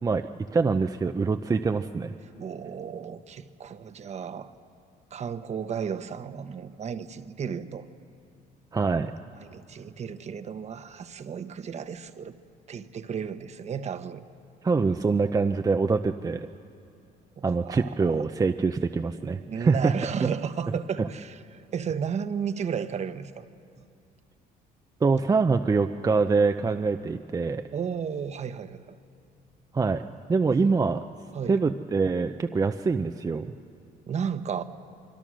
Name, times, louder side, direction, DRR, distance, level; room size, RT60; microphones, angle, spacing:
voice 1, 0.0-2.1 8.7-9.1 14.6-16.5 17.4-20.0 21.0-21.1 25.0-27.6 29.7-31.0 31.5-33.5, right 4 dB, 20° right, 7 dB, 0.6 m, -24 dB
voice 2, 2.4-4.5 5.1-7.8 9.4-12.4 12.7-14.3 17.4-18.2 19.4-23.5 27.7-29.0 30.6-30.8 31.3-31.6 34.1-34.6, right 7 dB, 40° right, 11 dB, 1.1 m, -33 dB
25.5 x 24.0 x 6.3 m, 2.6 s
cardioid pair, 110°, 17 cm